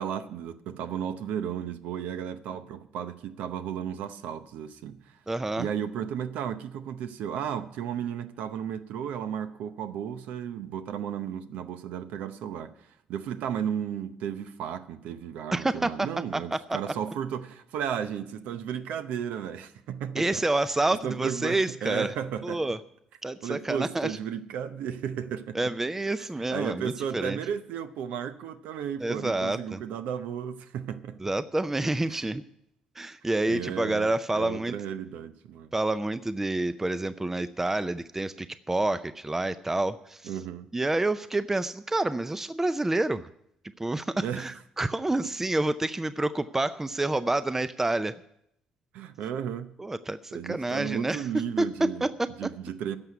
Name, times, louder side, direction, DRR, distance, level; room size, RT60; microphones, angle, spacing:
voice 1, 0.0-5.2 5.6-20.5 20.9-22.7 23.4-25.7 26.2-31.2 32.1-32.2 33.5-35.7 40.2-40.7 44.2-44.5 48.9-49.7 50.3-53.0, right 8 dB, 80° right, 0.8 m, -34 dB
voice 2, 5.3-5.7 15.5-16.1 16.3-16.6 20.2-22.1 22.4-22.8 23.2-24.2 25.5-27.4 29.0-29.8 31.2-32.4 33.0-34.7 35.7-40.2 40.7-43.3 43.8-48.1 49.8-50.2 50.4-52.1, right 2 dB, 15° right, 0.5 m, -28 dB
11.0 x 6.8 x 9.4 m
supercardioid pair, 70°, 2 cm